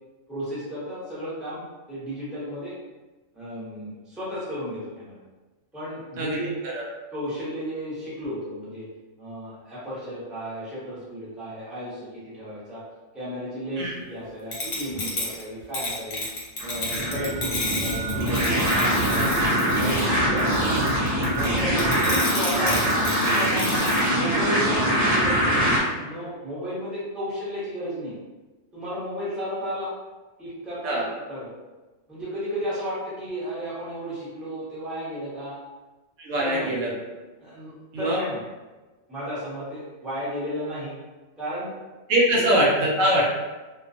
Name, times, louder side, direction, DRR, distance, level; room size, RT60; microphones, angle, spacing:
voice 1, 0.3-2.7 3.3-5.1 5.7-6.5 7.1-8.8 9.2-12.1 12.3-12.8 13.1-16.2 16.6-19.4 19.7-20.9 21.4-23.0 23.3-23.8 24.1-28.1 28.7-29.9 30.4-31.5 32.1-35.6 36.4-36.7 37.4-38.4 39.1-40.9 41.4-41.7 42.3-42.5, equal, ahead, -10 dB, 0.7 m, -33 dB
sound 1, 14.5-24.1, left 2 dB, 80° left, 1.1 m, -31 dB
sound 2, 16.6-25.8, equal, 50° right, 0.9 m, -23 dB
voice 2, 36.2-36.9 37.9-38.2 42.1-43.3, right 1 dB, 75° right, -3 dB, 1.0 m, -23 dB
2.4 x 2.2 x 2.5 m, 1.2 s
omnidirectional pair, 1.4 m